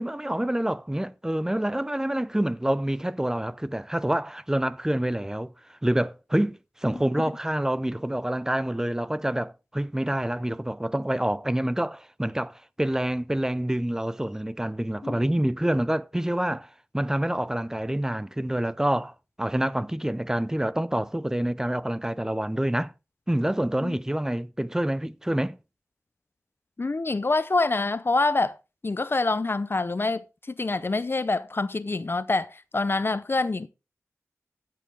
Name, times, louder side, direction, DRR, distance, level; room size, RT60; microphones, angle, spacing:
voice 1, 0.0-5.5 5.8-16.7 16.9-22.9 23.3-25.6, right 1 dB, 10° right, 0.5 m, -27 dB
voice 2, 26.8-28.6 28.8-30.2 30.6-33.7, left 3 dB, 45° left, 0.6 m, -26 dB
13.5 x 7.7 x 3.4 m
wide cardioid pair, 60°, 5 cm